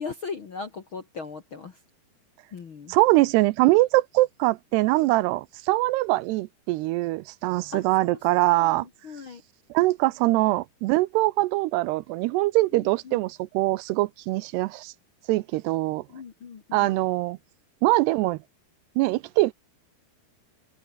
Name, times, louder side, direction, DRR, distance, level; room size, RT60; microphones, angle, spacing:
voice 1, 0.0-1.8 2.5-2.9 7.7-9.4 12.7-13.2 16.1-17.0, left 5 dB, 50° left, 1.6 m, -39 dB
voice 2, 2.9-8.9 9.7-14.9 15.3-16.0 16.7-17.4 17.8-18.4 19.0-19.5, right 19 dB, 85° right, 2.6 m, -23 dB
omnidirectional pair, 4.9 m